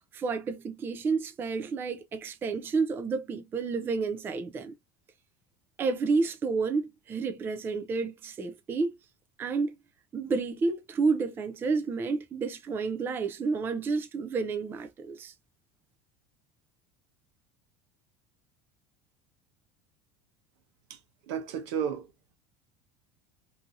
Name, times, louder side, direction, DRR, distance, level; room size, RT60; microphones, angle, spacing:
voice 1, 0.1-4.7 5.8-9.0 9.4-9.7 10.1-15.3, right 4 dB, 15° right, 0.3 m, -30 dB
voice 2, 20.9-22.1, right 8 dB, 85° right, 0.8 m, -33 dB
2.7 x 2.5 x 2.4 m
cardioid pair, 165°, 13 cm